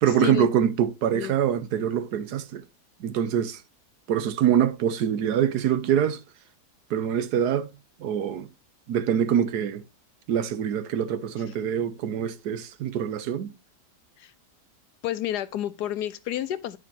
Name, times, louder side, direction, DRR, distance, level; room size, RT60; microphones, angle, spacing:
voice 1, 0.0-2.6 3.0-3.6 4.1-6.2 6.9-7.7 8.0-8.5 8.9-9.8 10.3-13.5, right 9 dB, 75° right, 1.3 m, -24 dB
voice 2, 15.0-16.8, left 11 dB, 75° left, 1.2 m, -30 dB
10.0 x 7.3 x 2.8 m
omnidirectional pair, 1.8 m